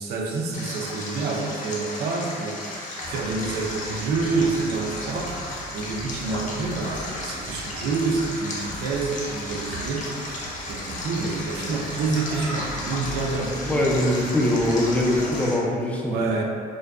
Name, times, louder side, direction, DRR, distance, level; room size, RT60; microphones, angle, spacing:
voice 1, 0.0-13.8 16.1-16.4, right 3 dB, 75° right, 0 dB, 0.4 m, -28 dB
Stream, 0.5-15.5, left 2 dB, 50° left, 0.6 m, -35 dB
sound 1, 3.0-15.4, right 1 dB, 30° right, 0.6 m, -39 dB
voice 2, 13.7-16.3, left 1 dB, 10° left, -2 dB, 0.3 m, -22 dB
2.5 x 2.1 x 2.2 m, 2.2 s
cardioid pair, 110°, 17 cm